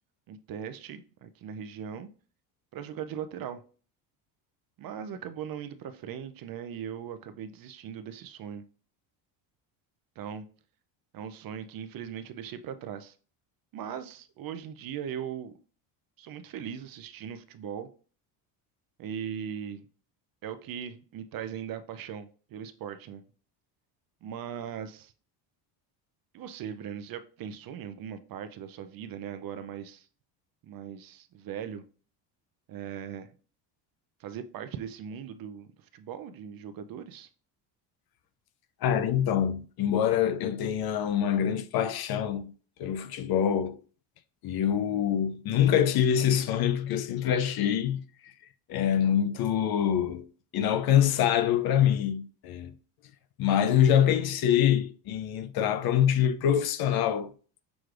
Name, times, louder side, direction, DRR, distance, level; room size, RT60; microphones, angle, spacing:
voice 1, 0.3-2.1 2.7-3.6 4.8-8.6 10.2-10.5 11.1-13.2 13.7-15.5 16.2-17.9 19.0-19.9 20.4-23.2 24.2-25.1 26.3-30.1 30.6-31.8 32.7-33.3 34.2-37.3, right 8 dB, 45° right, 0.5 m, -39 dB
voice 2, 38.8-42.5 42.8-43.8 44.4-48.3 48.7-50.3 50.5-52.7 53.4-57.3, left 9 dB, 50° left, 0.5 m, -25 dB
6.1 x 3.2 x 2.4 m
supercardioid pair, 95°, 50 cm